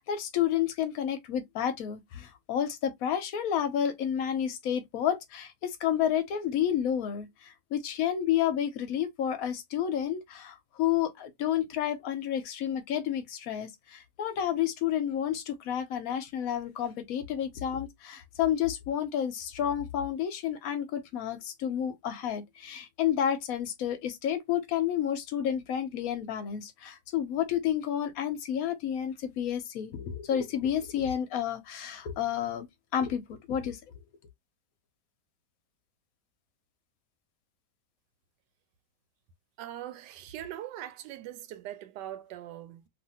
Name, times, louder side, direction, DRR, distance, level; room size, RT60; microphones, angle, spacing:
voice 1, 0.0-32.7 32.9-33.8, left 9 dB, 65° left, 0.9 m, -30 dB
voice 2, 39.6-42.9, right 12 dB, 80° right, 1.2 m, -41 dB
2.9 x 2.5 x 2.6 m
omnidirectional pair, 1.9 m